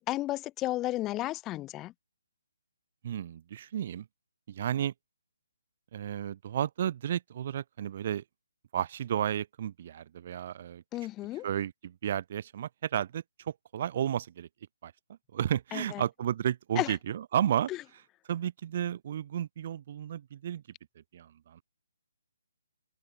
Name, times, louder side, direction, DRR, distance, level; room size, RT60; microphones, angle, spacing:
voice 1, 0.0-1.9 10.9-11.5 15.7-16.0 16.8-16.9 17.7-17.8, left 16 dB, 15° left, 0.7 m, -33 dB
voice 2, 3.0-4.0 4.5-4.9 5.9-8.2 8.7-10.8 11.4-14.5 14.8-14.9 15.3-17.7 18.3-20.6 21.1-21.6, right 10 dB, 40° right, 0.4 m, -32 dB
figure-of-eight pair, 140°, 0 cm